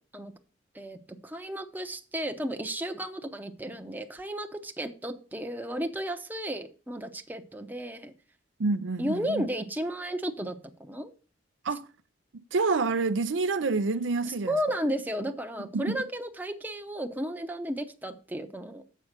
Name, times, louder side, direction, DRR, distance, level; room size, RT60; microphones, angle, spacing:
voice 1, 1.2-8.1 9.0-11.1 14.3-18.8, equal, 10° right, 0.7 m, -33 dB
voice 2, 8.6-9.5 11.6-11.9 12.5-14.5 15.7-16.0, right 3 dB, 85° right, 0.5 m, -27 dB
7.4 x 5.4 x 6.5 m
head